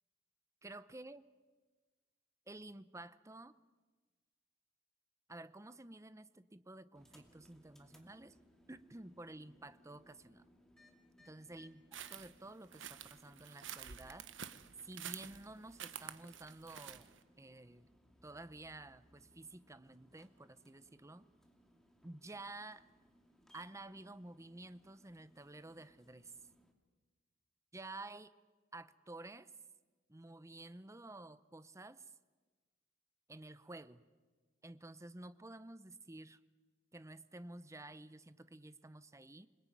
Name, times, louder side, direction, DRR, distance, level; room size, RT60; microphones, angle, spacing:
voice 1, 0.6-1.3 2.5-3.6 5.3-8.4 8.7-10.5 11.2-11.8 12.1-14.3 14.8-17.9 18.2-21.3 22.0-22.9 23.5-26.3 27.7-28.3 28.7-29.5 30.1-32.1 33.3-34.0 34.6-36.4 36.9-39.5, right 2 dB, 15° right, 14 dB, 0.8 m, -52 dB
sound 1, 6.9-26.7, equal, 5° left, 2.5 m, -68 dB
sound 2, 11.9-17.2, right 9 dB, 80° right, 1.3 m, -49 dB
27.5 x 20.5 x 9.3 m, 1.3 s
head